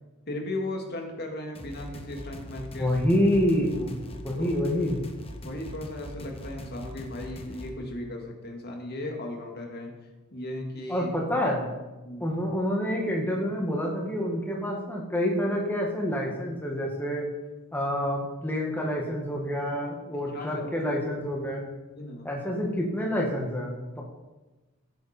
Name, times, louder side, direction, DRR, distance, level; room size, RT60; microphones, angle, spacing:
voice 1, 0.3-2.9 4.4-4.5 5.4-9.9 10.3-11.1 12.0-12.4 20.1-20.7 22.0-22.3, left 1 dB, 50° left, 2 dB, 2.1 m, -36 dB
sound 1, 1.5-7.7, left 1 dB, 25° left, 1.2 m, -42 dB
voice 2, 2.8-4.0 4.2-5.0 10.9-11.7 12.2-17.2 17.7-21.7 22.2-24.0, equal, 10° left, -1 dB, 1.8 m, -27 dB
16.0 x 9.0 x 4.4 m, 1.1 s
head